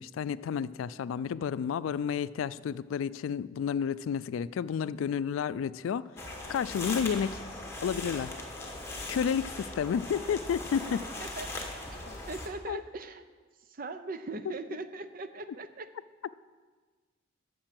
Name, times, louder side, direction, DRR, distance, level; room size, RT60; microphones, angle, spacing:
voice 1, 0.0-6.0 6.5-7.4 7.8-8.3 9.1-11.1 12.7-12.8, left 7 dB, 90° left, 17 dB, 0.3 m, -31 dB
sound 1, 6.2-12.5, left 2 dB, 15° left, 1.2 m, -39 dB
voice 2, 11.2-11.5 11.9-13.2 13.7-15.9, right 3 dB, 45° right, 10 dB, 0.6 m, -40 dB
8.9 x 6.7 x 7.6 m, 1.4 s
head